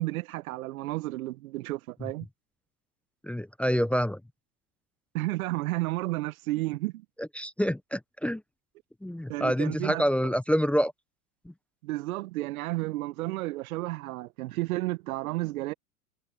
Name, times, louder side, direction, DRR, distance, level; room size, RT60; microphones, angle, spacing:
voice 1, 0.0-2.3 5.1-7.0 9.3-10.4 11.8-15.7, right 19 dB, 65° right, 1.3 m, -32 dB
voice 2, 3.2-4.2 7.2-8.4 9.0-10.9, equal, 5° left, 0.9 m, -27 dB
hypercardioid pair, 95°, 45 cm